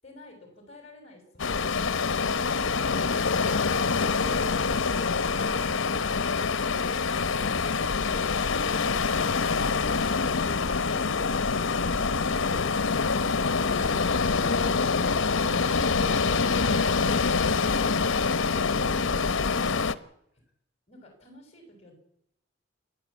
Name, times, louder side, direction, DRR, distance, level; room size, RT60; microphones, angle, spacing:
voice 1, 0.0-3.0 20.9-22.0, left 1 dB, 30° left, 3 dB, 6.4 m, -51 dB
sound 1, 1.4-19.9, left 4 dB, 80° left, 0.9 m, -25 dB
voice 2, 2.9-3.7, left 1 dB, 5° right, -1 dB, 3.9 m, -46 dB
28.0 x 11.0 x 8.5 m, 0.76 s
head